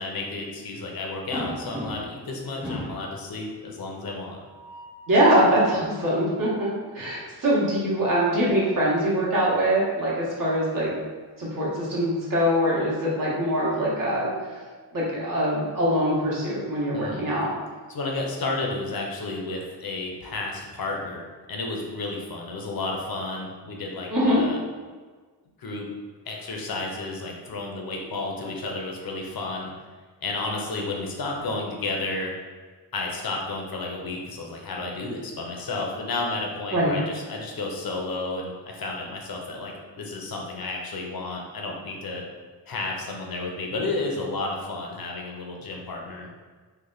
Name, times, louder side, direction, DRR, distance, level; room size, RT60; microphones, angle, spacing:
voice 1, 0.0-4.4 16.9-17.3 17.9-24.6 25.6-25.9 26.3-29.7 30.2-32.4 32.9-42.2 42.7-46.3, left 2 dB, 55° left, 0 dB, 0.8 m, -32 dB
sound 1, 1.3-2.2 2.6-3.1 4.3-5.1 7.7-8.8 10.2-10.4 10.7-10.8 12.4-13.6, equal, 5° right, 0.8 m, -38 dB
voice 2, 5.1-6.7 6.9-10.9 11.4-14.3 14.9-17.6 24.1-24.4 36.7-37.0, equal, 50° right, -6 dB, 1.4 m, -23 dB
3.3 x 2.4 x 3.9 m, 1.4 s
cardioid pair, 85°, 43 cm